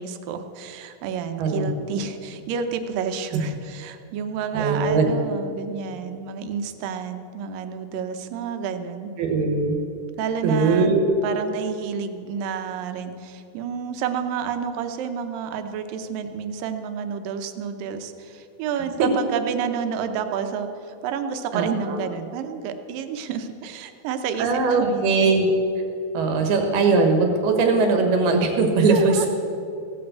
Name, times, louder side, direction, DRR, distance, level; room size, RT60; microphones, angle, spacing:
voice 1, 0.0-9.1 10.2-11.0 11.2-25.3 28.9-29.3, right 7 dB, 75° right, 7 dB, 2.4 m, -30 dB
voice 2, 1.4-1.7 3.3-3.4 4.5-5.1 9.2-9.8 10.4-11.0 19.0-19.1 21.5-22.0 24.4-25.5 26.1-29.2, right 4 dB, 90° right, 4 dB, 3.5 m, -20 dB
16.0 x 8.8 x 8.0 m, 2.6 s
omnidirectional pair, 4.3 m